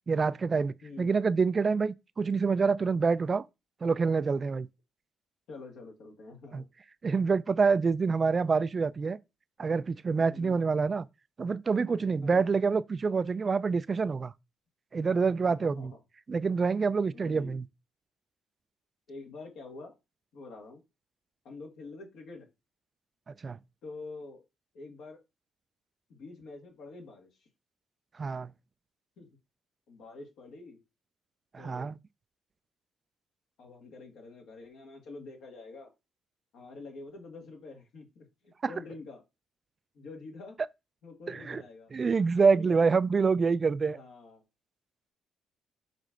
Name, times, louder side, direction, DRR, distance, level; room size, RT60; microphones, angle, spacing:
voice 1, 0.1-3.5 3.8-4.7 6.5-6.6 7.0-9.2 9.6-11.1 11.4-14.3 14.9-15.9 16.3-17.7 23.3-23.6 28.2-28.5 31.5-32.0 38.6-38.7 41.3-41.6 41.9-44.0, right 5 dB, 35° right, 0.3 m, -27 dB
voice 2, 0.8-1.1 5.5-6.7 10.2-10.6 12.2-12.5 15.4-15.9 17.1-17.6 19.1-19.9 20.3-20.8 21.4-22.5 23.8-24.4 24.7-25.2 26.1-27.3 29.2-29.3 29.9-30.8 31.6-31.9 33.6-35.9 36.5-39.2 39.9-40.6 41.0-41.9 42.5-42.9 43.9-44.4, left 3 dB, 80° left, 2.3 m, -46 dB
6.6 x 3.2 x 5.1 m
cardioid pair, 90°, 0 cm